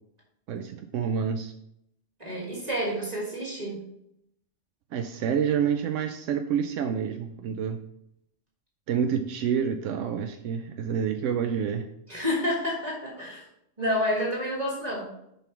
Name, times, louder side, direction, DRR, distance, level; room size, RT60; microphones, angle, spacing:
voice 1, 0.5-1.5 4.9-7.8 8.9-11.9, right 7 dB, 85° right, 6 dB, 0.9 m, -28 dB
voice 2, 2.2-3.9 12.1-13.4 13.8-15.1, equal, 35° right, -4 dB, 1.9 m, -29 dB
5.7 x 5.3 x 4.5 m, 0.75 s
omnidirectional pair, 1.2 m